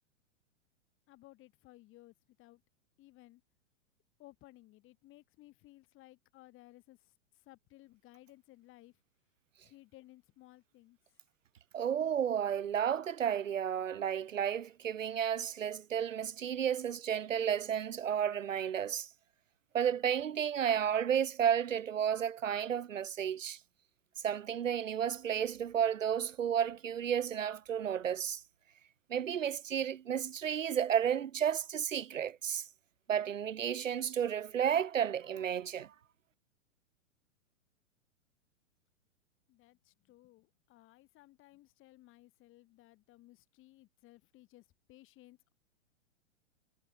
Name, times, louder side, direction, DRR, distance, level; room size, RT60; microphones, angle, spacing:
voice 1, 1.1-2.6 3.0-3.4 4.2-7.0 7.5-8.9 9.6-11.0 39.5-44.6 44.9-45.5, left 17 dB, 30° left, 7.3 m, -59 dB
voice 2, 11.7-19.1 19.7-23.6 24.2-28.4 29.1-32.6 33.1-35.9, right 9 dB, 80° right, 0.8 m, -32 dB
figure-of-eight pair, 105°, 38 cm